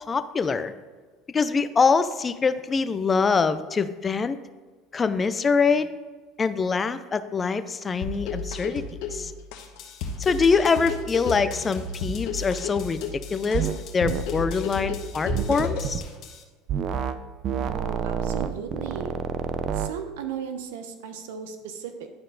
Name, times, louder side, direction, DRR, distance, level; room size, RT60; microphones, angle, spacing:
voice 1, 0.1-0.7 1.3-4.4 4.9-5.9 6.4-8.8 9.1-9.3 10.2-13.0 13.3-13.7 13.9-16.0, left 5 dB, 25° left, 11 dB, 0.5 m, -24 dB
sound 1, 8.0-16.0, left 4 dB, 75° left, 1.0 m, -32 dB
sound 2, 9.6-16.4, left 8 dB, 55° left, 1.6 m, -46 dB
sound 3, 13.5-13.8 14.0-14.3 15.3-16.0 16.7-17.2 17.4-19.9, right 8 dB, 50° right, 0.5 m, -28 dB
voice 2, 17.6-19.2 19.7-22.1, right 7 dB, 90° right, 7 dB, 0.9 m, -36 dB
11.5 x 4.4 x 3.9 m, 1.4 s
supercardioid pair, 110°, 0 cm